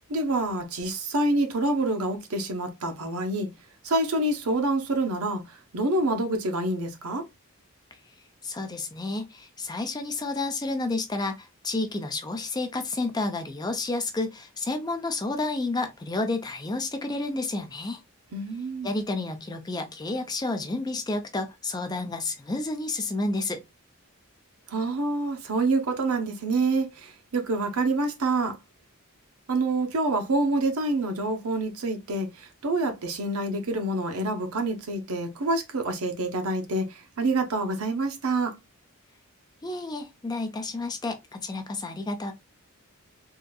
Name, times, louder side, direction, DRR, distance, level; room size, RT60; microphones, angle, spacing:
voice 1, 0.1-3.5 3.8-7.2 18.3-18.9 24.7-28.6 29.5-38.6, right 2 dB, 90° right, 0.8 m, -27 dB
voice 2, 8.4-18.0 18.8-23.6 39.6-42.3, left 2 dB, 20° left, 0.5 m, -30 dB
3.6 x 2.6 x 2.2 m
head